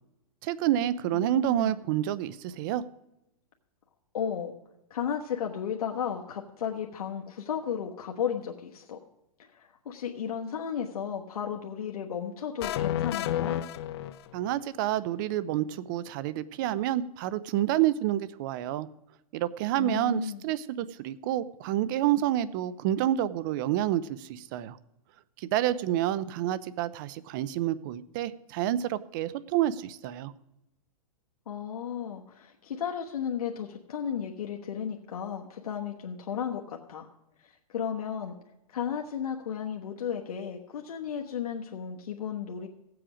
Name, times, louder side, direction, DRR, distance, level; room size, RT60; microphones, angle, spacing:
voice 1, 0.4-2.8 14.3-18.9 19.3-24.8 25.4-30.3, right 12 dB, 35° right, 17 dB, 0.5 m, -28 dB
voice 2, 1.1-1.8 4.1-4.5 4.9-9.0 9.5-13.6 19.7-20.4 31.5-37.1 37.4-38.3 38.7-42.7, left 8 dB, 80° left, 1 dB, 1.2 m, -34 dB
sound 1, 12.6-14.6, left 12 dB, 45° left, 0.5 m, -31 dB
16.0 x 7.7 x 5.0 m, 0.92 s
hypercardioid pair, 150°, 19 cm